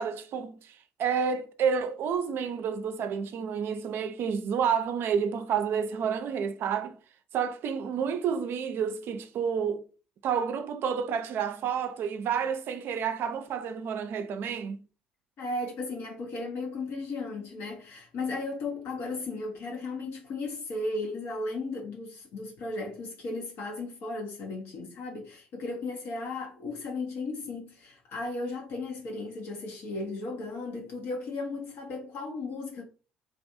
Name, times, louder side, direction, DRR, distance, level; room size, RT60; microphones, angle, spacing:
voice 1, 0.0-7.0 7.3-9.9 10.2-14.8, right 7 dB, 55° right, 0.4 m, -30 dB
voice 2, 15.4-32.8, left 3 dB, 55° left, 0.7 m, -35 dB
2.5 x 2.3 x 2.5 m
figure-of-eight pair, 55°, 5 cm